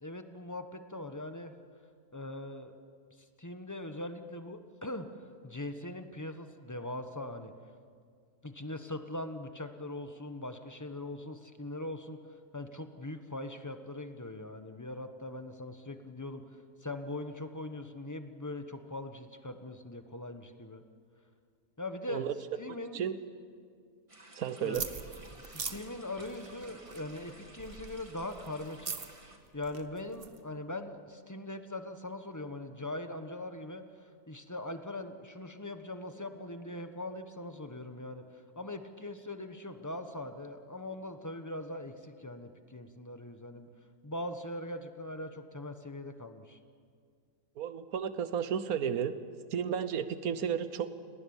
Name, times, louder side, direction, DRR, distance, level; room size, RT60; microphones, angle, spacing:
voice 1, 0.0-1.5 2.1-2.7 3.4-5.1 5.4-7.5 8.4-12.2 12.5-20.8 21.8-22.3 22.6-23.0 24.6-25.0 25.4-28.9 29.5-43.7 44.0-46.6, left 1 dB, 15° left, 8 dB, 1.0 m, -41 dB
sound 1, 24.1-29.4, right 1 dB, 20° right, 2.0 m, -55 dB
voice 2, 24.4-24.9 47.6-49.1 49.5-51.0, right 8 dB, 70° right, 12 dB, 1.4 m, -33 dB
sound 2, 24.7-30.4, right 5 dB, 40° right, 1.3 m, -43 dB
29.0 x 19.0 x 7.2 m, 2.1 s
omnidirectional pair, 1.6 m